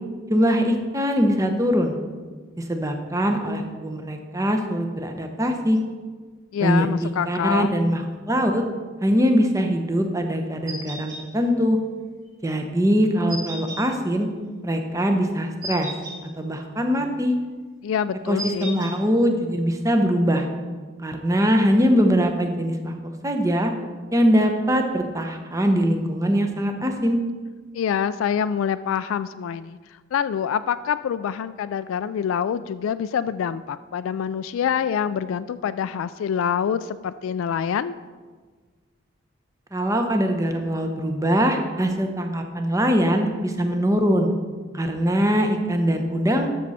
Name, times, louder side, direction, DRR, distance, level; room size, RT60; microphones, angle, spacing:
voice 1, 0.3-2.0 2.6-5.8 6.6-8.6 9.0-11.8 12.4-14.3 14.6-15.9 16.4-17.3 18.3-20.5 21.0-22.9 23.2-23.7 24.1-27.2 39.7-44.3 44.7-46.5, equal, 15° right, 5 dB, 0.8 m, -22 dB
voice 2, 6.5-7.8 17.8-18.8 27.7-29.8 30.1-37.9, left 8 dB, 85° left, 13 dB, 0.3 m, -26 dB
sound 1, 10.7-11.2 13.3-13.8 15.6-16.2 18.4-18.9, equal, 40° right, 2.4 m, -33 dB
12.0 x 6.4 x 4.2 m, 1.5 s
head